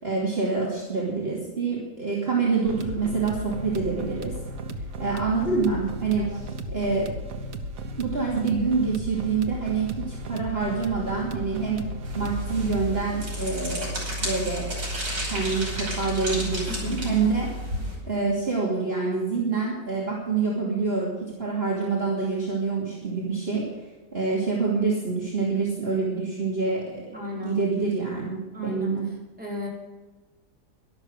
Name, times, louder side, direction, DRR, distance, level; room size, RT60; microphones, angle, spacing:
voice 1, 0.0-4.3 5.0-7.1 8.0-11.8 12.1-13.9 14.2-14.7 15.3-17.5 18.0-23.7 24.1-27.2 27.4-29.0, right 4 dB, 35° right, -4 dB, 2.9 m, -26 dB
sound 1, 2.6-13.0, right 1 dB, 55° right, 1.5 m, -35 dB
sound 2, 12.0-18.0, equal, 80° right, 6.4 m, -31 dB
voice 2, 16.7-17.1 27.1-27.5 28.5-28.9 29.4-29.7, left 2 dB, 5° right, -4 dB, 5.0 m, -35 dB
13.0 x 12.0 x 6.6 m, 1.2 s
omnidirectional pair, 1.9 m